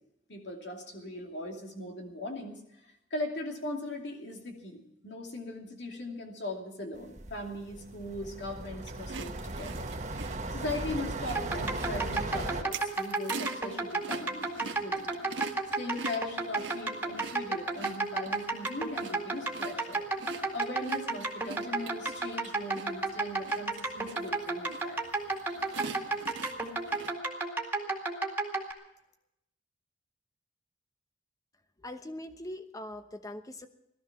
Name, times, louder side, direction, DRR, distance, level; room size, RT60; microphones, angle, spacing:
voice 1, 0.3-2.6 3.1-9.9 10.5-15.1 15.7-20.0 20.5-25.0, left 1 dB, 65° left, 2 dB, 2.6 m, -39 dB
sound 1, 6.9-12.6, right 2 dB, 40° right, 1.3 m, -37 dB
sound 2, 8.8-27.1, right 4 dB, 80° right, 1.4 m, -45 dB
sound 3, 11.3-28.7, right 3 dB, 10° right, 2.2 m, -33 dB
voice 2, 31.8-33.7, left 1 dB, 20° left, 8 dB, 1.0 m, -41 dB
17.5 x 13.0 x 6.0 m, 0.82 s
head